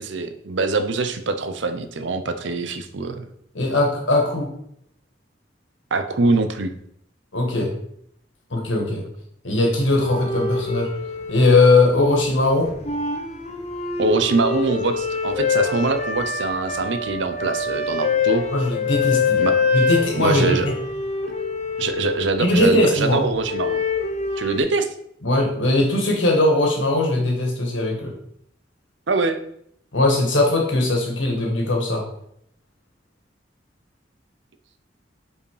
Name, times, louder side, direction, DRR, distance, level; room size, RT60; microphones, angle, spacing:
voice 1, 0.0-3.3 5.9-6.7 14.0-18.4 19.4-19.7 20.1-20.7 21.8-23.8 24.4-24.9 29.1-29.4, right 3 dB, 75° right, 9 dB, 0.7 m, -23 dB
voice 2, 3.5-4.5 7.3-7.7 8.5-9.0 9.4-10.9 11.3-12.7 18.5-19.4 19.7-20.7 22.4-23.2 25.2-28.1 29.9-32.0, left 2 dB, 90° left, 0 dB, 2.0 m, -19 dB
sound 1, 9.9-12.3 12.6-22.8 23.4-24.6, left 4 dB, 35° left, 0.7 m, -25 dB
5.3 x 4.9 x 4.9 m, 0.71 s
head